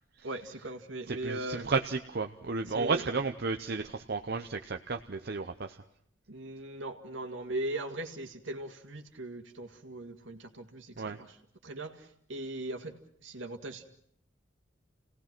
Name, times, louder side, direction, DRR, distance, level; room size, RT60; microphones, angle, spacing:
voice 1, 0.2-1.7 2.7-3.1 6.3-11.4 11.6-13.9, right 1 dB, 75° right, 5 dB, 2.2 m, -39 dB
voice 2, 1.1-5.8 11.0-11.2, right 4 dB, 55° right, 5 dB, 0.8 m, -33 dB
29.5 x 18.0 x 6.1 m, 0.68 s
head